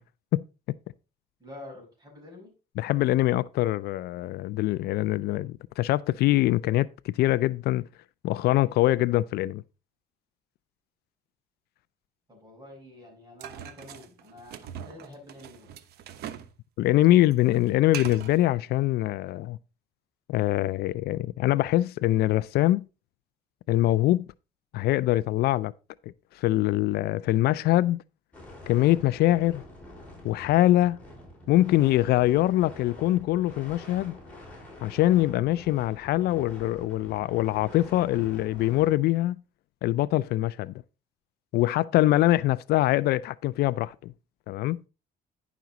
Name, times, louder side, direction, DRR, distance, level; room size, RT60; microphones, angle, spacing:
voice 1, 1.4-2.5 12.3-15.7, left 1 dB, 25° right, 5.6 m, -47 dB
voice 2, 2.8-7.9 8.2-9.6 16.8-19.6 20.3-22.9 23.7-24.3 24.7-25.7 26.4-28.0 28.7-29.6 30.2-31.0 31.5-34.2 34.8-39.4 39.8-40.7 41.5-44.1 44.5-44.8, left 15 dB, 70° left, 0.4 m, -23 dB
sound 1, 13.4-16.5 16.8-18.4, right 10 dB, 70° right, 0.9 m, -41 dB
sound 2, 28.3-38.9, left 1 dB, 10° left, 5.3 m, -46 dB
10.5 x 6.1 x 4.0 m
cardioid pair, 110°, 17 cm